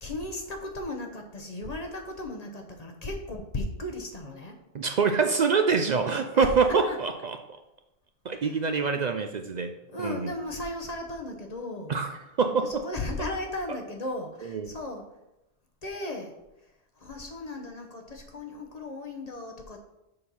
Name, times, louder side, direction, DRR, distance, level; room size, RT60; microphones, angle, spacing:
voice 1, 0.0-4.5 6.3-6.5 6.9-7.0 8.3-8.4 9.9-11.9 12.6-15.0 15.8-16.3 17.0-19.8, left 2 dB, 40° left, 3 dB, 1.0 m, -36 dB
voice 2, 4.7-7.4 8.2-9.7 10.0-10.3 11.9-12.8 14.4-14.7, right 5 dB, 55° right, 6 dB, 0.5 m, -25 dB
6.7 x 4.4 x 5.4 m, 0.90 s
omnidirectional pair, 1.1 m